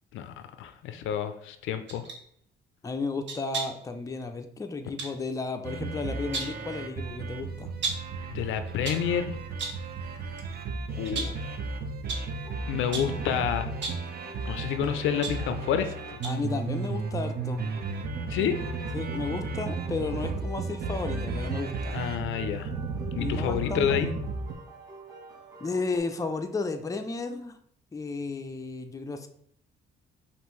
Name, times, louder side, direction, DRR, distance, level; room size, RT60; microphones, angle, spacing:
voice 1, 0.1-2.1 8.3-9.4 11.0-11.6 12.7-13.7 14.5-16.2 18.3-18.6 21.9-22.7 23.1-24.1, left 9 dB, 80° left, 9 dB, 0.4 m, -29 dB
sound 1, 1.9-2.2 3.3-3.9 5.0-5.2 6.1-6.6 7.8-8.2 8.7-9.1 9.6-9.9 10.4-10.6 11.0-11.5 12.1-12.3 12.9-13.2 13.7-14.1 14.8-15.9 16.2-16.5 16.8-16.9, right 4 dB, 65° right, 0.9 m, -35 dB
voice 2, 2.8-7.7 16.2-17.6 18.9-22.0 23.2-24.1 25.6-27.6 27.9-29.3, left 3 dB, 15° left, 5 dB, 0.4 m, -33 dB
sound 2, 5.6-24.5, right 4 dB, 50° right, 0.6 m, -34 dB
sound 3, 12.4-26.0, right 2 dB, 20° right, 1.0 m, -48 dB
5.2 x 2.5 x 3.1 m, 0.68 s
cardioid pair, 90°, 20 cm